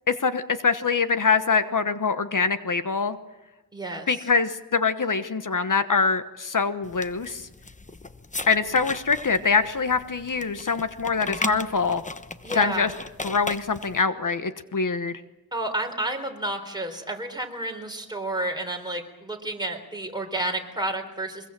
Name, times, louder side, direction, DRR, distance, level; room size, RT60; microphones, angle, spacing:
voice 1, 0.1-3.2 4.1-7.5 8.5-12.0 12.5-12.9 13.2-15.2, left 5 dB, 55° left, 10 dB, 1.2 m, -24 dB
voice 2, 3.7-4.2 12.4-12.9 15.5-21.5, right 1 dB, 10° right, 3 dB, 3.9 m, -31 dB
sound 1, 6.8-14.0, left 2 dB, 20° left, 1.0 m, -37 dB
23.5 x 22.0 x 7.5 m, 1.1 s
wide cardioid pair, 100°, 36 cm